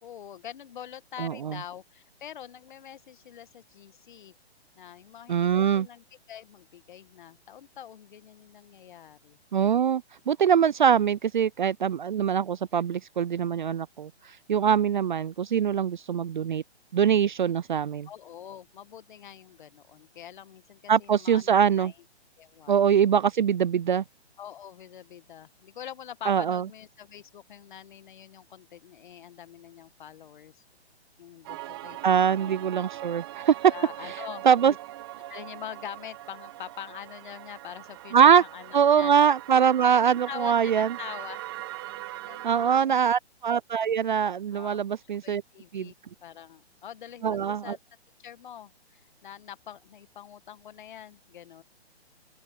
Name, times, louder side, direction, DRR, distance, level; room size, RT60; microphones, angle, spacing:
voice 1, 0.0-4.3 4.8-9.4 18.1-21.9 22.4-22.8 24.4-30.6 31.2-32.6 33.7-34.6 35.3-39.1 40.0-41.5 42.2-43.1 44.5-44.8 45.2-45.9 46.2-47.8 48.2-51.6, left 10 dB, 45° left, 1.6 m, -44 dB
voice 2, 1.2-1.6 5.3-5.9 9.5-16.6 16.9-18.1 20.9-21.9 22.7-24.0 26.3-26.6 32.0-33.7 34.0-34.7 38.1-38.4 38.7-40.9 42.4-45.4 45.7-45.9 47.2-47.8, right 8 dB, 45° right, 0.4 m, -23 dB
sound 1, 31.4-42.8, right 15 dB, 25° right, 1.0 m, -41 dB
open air
hypercardioid pair, 160°, 33 cm